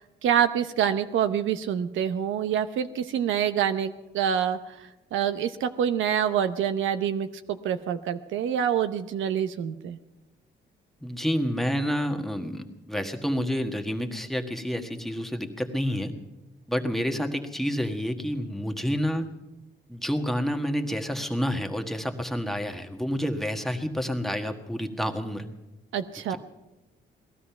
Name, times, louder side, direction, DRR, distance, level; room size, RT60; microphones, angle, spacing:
voice 1, 0.2-10.0 25.9-26.4, right 9 dB, 75° right, 10 dB, 0.7 m, -26 dB
voice 2, 11.0-16.1 16.7-19.3 19.9-25.5 26.3-26.4, equal, ahead, 4 dB, 1.5 m, -29 dB
18.5 x 12.5 x 5.8 m, 1.0 s
cardioid pair, 90°, 20 cm